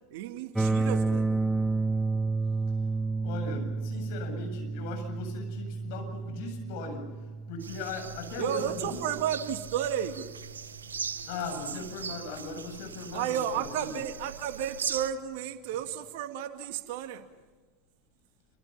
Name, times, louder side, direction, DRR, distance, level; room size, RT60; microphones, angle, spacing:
voice 1, 0.1-1.4 8.4-10.3 13.1-17.3, right 10 dB, 60° right, 8 dB, 2.1 m, -32 dB
sound 1, 0.6-10.5, right 3 dB, 5° right, 1.0 m, -31 dB
voice 2, 3.2-7.1 7.5-9.2 11.3-14.0, left 3 dB, 60° left, 4 dB, 7.8 m, -38 dB
sound 2, 7.6-15.1, right 6 dB, 80° right, 1.0 m, -40 dB
27.0 x 26.0 x 5.7 m, 1.4 s
figure-of-eight pair, 85°, 0 cm